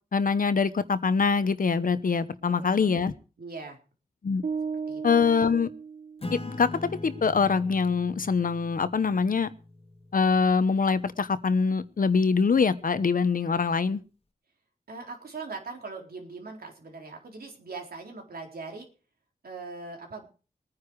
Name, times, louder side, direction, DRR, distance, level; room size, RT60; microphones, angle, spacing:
voice 1, 0.1-3.1 4.2-4.4 5.0-5.7 6.5-9.5 10.1-14.0, left 5 dB, 65° left, 14 dB, 1.0 m, -24 dB
voice 2, 2.6-3.0 3.4-3.8 4.9-5.3 14.9-18.9 19.4-20.3, right 4 dB, 85° right, 1 dB, 4.0 m, -41 dB
sound 1, 4.4-6.6, right 5 dB, 60° right, 1.0 m, -35 dB
Acoustic guitar / Strum, 6.2-11.2, left 2 dB, 40° left, 1.7 m, -42 dB
21.5 x 9.8 x 4.8 m, 0.36 s
wide cardioid pair, 105°, 15 cm